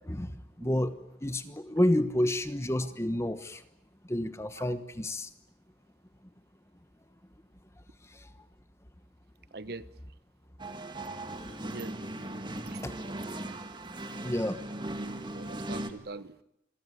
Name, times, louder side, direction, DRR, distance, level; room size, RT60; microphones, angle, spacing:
voice 1, 0.0-3.6 4.0-5.3 8.1-8.3 12.8-13.0 14.2-14.6, left 1 dB, 15° left, 11 dB, 1.1 m, -30 dB
voice 2, 9.5-9.9 11.6-12.1 12.7-12.8 15.3-16.3, right 3 dB, 55° right, 15 dB, 1.0 m, -43 dB
sound 1, 10.6-15.9, right 1 dB, 25° right, 2.0 m, -38 dB
26.5 x 22.0 x 9.5 m, 0.82 s
head